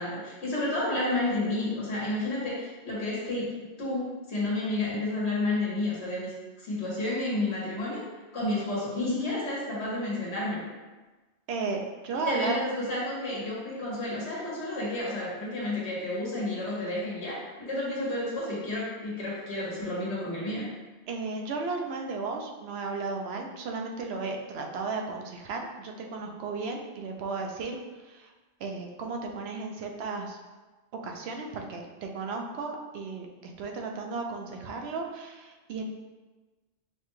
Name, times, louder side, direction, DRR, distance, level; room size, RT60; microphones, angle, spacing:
voice 1, 0.0-6.3 6.6-8.0 8.3-10.7 12.2-20.7, left 2 dB, 85° left, -6 dB, 1.4 m, -31 dB
voice 2, 11.5-12.6 21.1-27.8 28.1-28.3 28.6-30.4 31.0-35.9, right 4 dB, 75° right, 2 dB, 0.8 m, -34 dB
5.6 x 2.2 x 3.0 m, 1.2 s
omnidirectional pair, 1.1 m